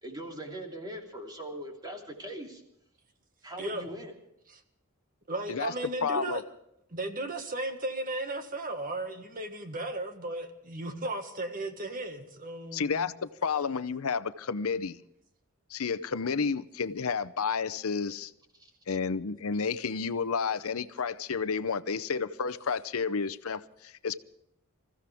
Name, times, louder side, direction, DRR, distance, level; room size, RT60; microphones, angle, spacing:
voice 1, 0.0-2.6 3.4-4.1 18.5-18.7, right 1 dB, 20° right, 3.0 m, -41 dB
voice 2, 5.3-6.4 6.9-13.1, right 2 dB, 40° right, 1.8 m, -35 dB
voice 3, 6.0-6.4 12.7-15.0 15.7-18.3 18.9-24.2, left 5 dB, 75° left, 0.7 m, -31 dB
27.0 x 15.0 x 3.5 m
head